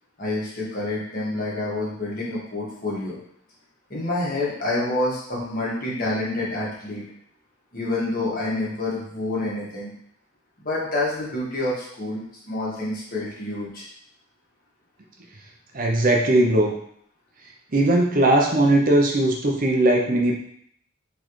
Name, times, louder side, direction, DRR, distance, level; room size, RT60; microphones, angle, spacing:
voice 1, 0.2-3.2 3.9-7.0 7.7-9.9 10.6-13.8, left 2 dB, 45° left, -6 dB, 1.5 m, -28 dB
voice 2, 15.7-16.7 17.7-20.3, right 1 dB, 40° right, 0 dB, 0.6 m, -19 dB
4.0 x 3.8 x 3.1 m, 0.67 s
head